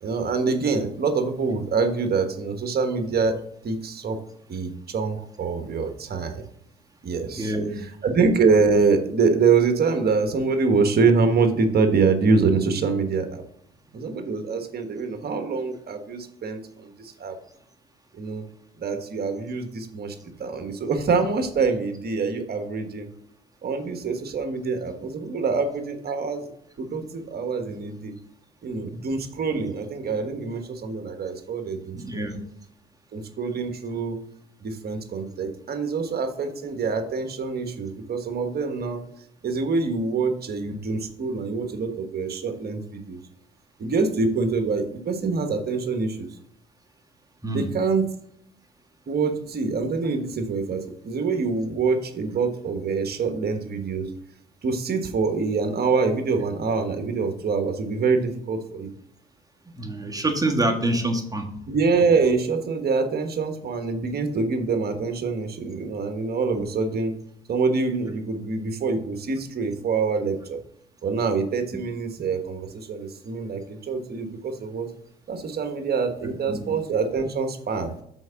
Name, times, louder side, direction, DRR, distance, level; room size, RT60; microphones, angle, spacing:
voice 1, 0.0-3.4 3.6-4.2 4.5-6.4 7.0-7.5 8.0-13.4 13.9-17.4 18.1-18.4 18.8-23.1 23.6-26.5 26.8-28.1 28.6-32.2 33.1-34.2 34.6-39.0 39.4-43.2 43.8-46.3 47.5-48.1 49.1-54.1 54.6-58.9 61.7-67.1 67.5-70.6 71.0-74.9 75.3-77.9, right 4 dB, 50° right, 6 dB, 1.4 m, -25 dB
voice 2, 7.3-7.8 31.9-32.4 47.4-47.7 59.7-61.5 66.5-66.6 76.5-76.7, right 1 dB, 15° right, 2 dB, 1.6 m, -26 dB
6.2 x 4.6 x 5.7 m, 0.70 s
supercardioid pair, 70°, 21 cm